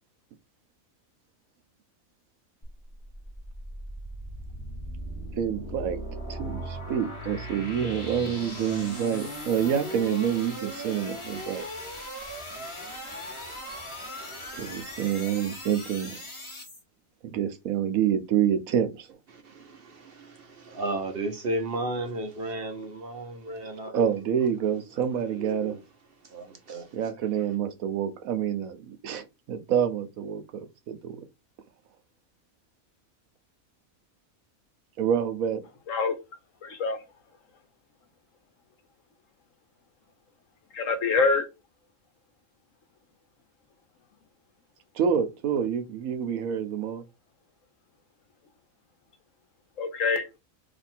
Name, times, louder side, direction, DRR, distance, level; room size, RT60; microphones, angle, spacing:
sound 1, 2.6-16.8, equal, 25° left, 1.2 m, -38 dB
voice 1, 5.4-6.0 6.3-11.6 14.6-16.2 17.2-19.1 23.9-25.8 26.9-30.4 30.9-31.2 35.0-35.7 45.0-47.0, right 8 dB, 85° right, 1.1 m, -27 dB
voice 2, 19.3-24.1 24.6-24.8 25.2-25.8 26.2-27.2, right 2 dB, 55° right, 0.7 m, -34 dB
voice 3, 36.6-37.0 40.7-41.5 49.8-50.4, left 4 dB, 70° left, 1.2 m, -25 dB
2.9 x 2.6 x 4.2 m
omnidirectional pair, 1.4 m